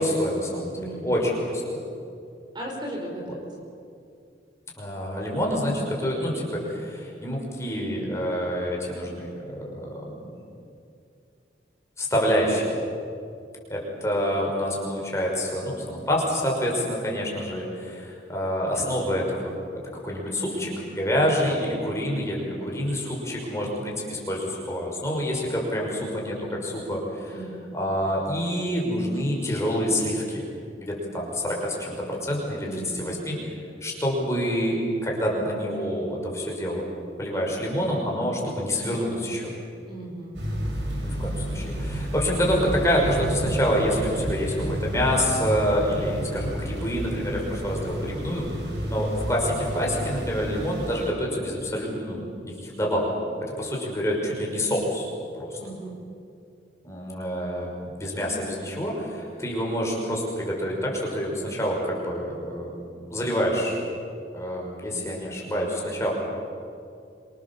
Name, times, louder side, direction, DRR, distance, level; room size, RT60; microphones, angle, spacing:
voice 1, 0.0-1.6 4.8-9.4 12.0-12.7 13.7-19.5 20.0-27.4 27.7-30.4 30.8-33.3 33.8-36.8 37.2-39.5 41.0-48.5 48.9-53.1 53.6-55.1 55.4-55.6 56.8-63.8 64.3-66.1, equal, 15° left, -2 dB, 6.1 m, -27 dB
voice 2, 0.7-1.2 2.5-3.6 27.3-27.6 32.6-33.4 39.9-40.4 55.6-56.0, right 1 dB, 25° right, -1 dB, 5.1 m, -37 dB
sound 1, 40.3-51.1, equal, 85° right, 6.5 m, -31 dB
26.5 x 26.0 x 7.4 m, 2.5 s
head